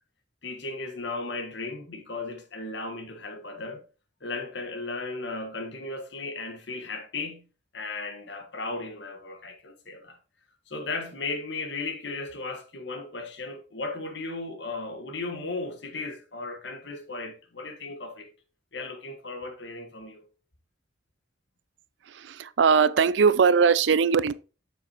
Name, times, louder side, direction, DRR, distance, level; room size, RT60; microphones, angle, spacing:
voice 1, 0.4-3.8 4.2-7.4 7.7-10.2 10.7-18.3 18.7-20.3, left 3 dB, 75° left, 1.5 m, -36 dB
voice 2, 22.2-24.3, right 5 dB, 75° right, 0.4 m, -20 dB
7.5 x 7.2 x 3.0 m
head